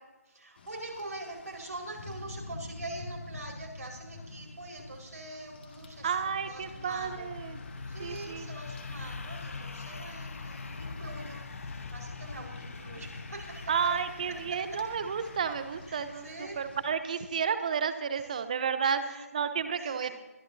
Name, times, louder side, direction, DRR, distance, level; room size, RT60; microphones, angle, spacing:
voice 1, 0.3-7.3 7.9-11.4 11.9-13.9 15.9-16.6 18.1-18.5 19.0-19.3 19.8-20.1, right 2 dB, 80° right, -1 dB, 4.9 m, -44 dB
Rain, 0.6-16.9, left 2 dB, 40° left, 2.1 m, -48 dB
sound 1, 5.4-17.0, left 4 dB, 60° left, 1.2 m, -43 dB
voice 2, 6.0-7.6 8.0-8.5 13.7-20.1, right 7 dB, 30° right, 11 dB, 0.8 m, -31 dB
22.5 x 12.0 x 2.8 m, 1.2 s
figure-of-eight pair, 165°, 8 cm